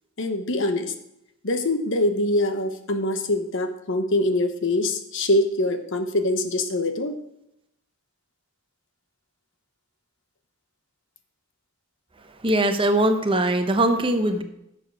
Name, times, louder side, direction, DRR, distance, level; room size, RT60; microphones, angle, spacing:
voice 1, 0.2-0.9 1.4-7.1, left 1 dB, 60° left, 8 dB, 1.0 m, -24 dB
voice 2, 12.4-14.4, right 1 dB, 25° right, 7 dB, 0.8 m, -21 dB
11.5 x 6.9 x 4.7 m, 0.82 s
head